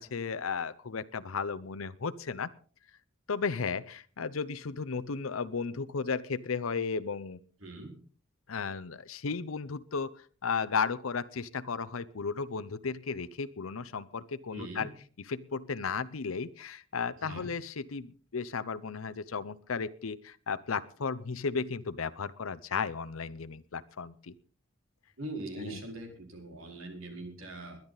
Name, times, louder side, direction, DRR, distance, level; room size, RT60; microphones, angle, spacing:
voice 1, 0.0-2.5 3.3-7.4 8.5-10.1 10.4-14.9 15.3-24.3 25.6-25.8, left 5 dB, 85° left, 13 dB, 0.7 m, -34 dB
voice 2, 7.6-7.9 14.5-14.9 17.2-17.5 25.2-27.8, right 2 dB, 80° right, 3 dB, 4.7 m, -41 dB
21.5 x 10.5 x 4.0 m, 0.42 s
head